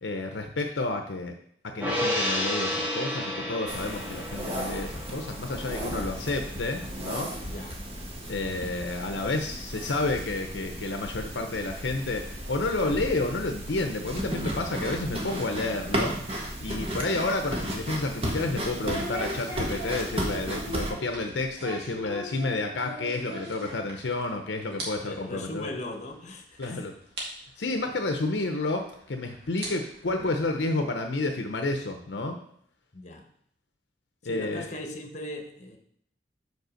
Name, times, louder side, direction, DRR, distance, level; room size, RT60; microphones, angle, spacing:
voice 1, 0.0-1.3 1.6-7.3 8.3-16.2 16.6-25.7 26.6-26.9 27.6-32.4 34.2-34.7, left 2 dB, 75° left, 4 dB, 0.7 m, -30 dB
Gong, 1.8-8.4 8.8-8.9, left 1 dB, 10° right, 1.4 m, -33 dB
sound 1, 3.7-20.9, right 1 dB, 35° right, 1.3 m, -34 dB
voice 2, 7.4-7.8 21.9-22.2 25.0-26.9 27.8-27.9 32.9-33.2 34.2-35.8, left 1 dB, 40° left, 3 dB, 1.1 m, -39 dB
sound 2, 16.4-24.3 24.6-24.9 25.2-25.3 26.0-26.1 26.6-26.7 27.2-27.3 28.6-28.7 29.4-30.8, right 1 dB, 65° right, 1.9 m, -40 dB
5.3 x 4.7 x 6.4 m, 0.66 s
head